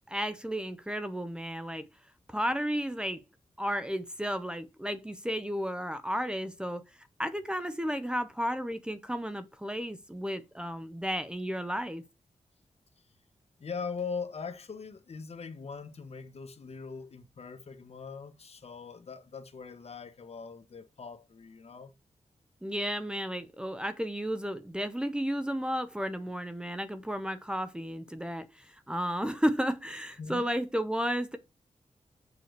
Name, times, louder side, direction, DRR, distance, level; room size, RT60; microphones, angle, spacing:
voice 1, 0.1-1.9 2.3-3.2 3.6-6.8 7.2-12.0 22.6-31.4, equal, 5° right, 0.7 m, -33 dB
voice 2, 13.6-21.9 30.2-30.5, left 5 dB, 55° left, 1.2 m, -41 dB
6.9 x 4.8 x 6.6 m
wide cardioid pair, 140°, 12 cm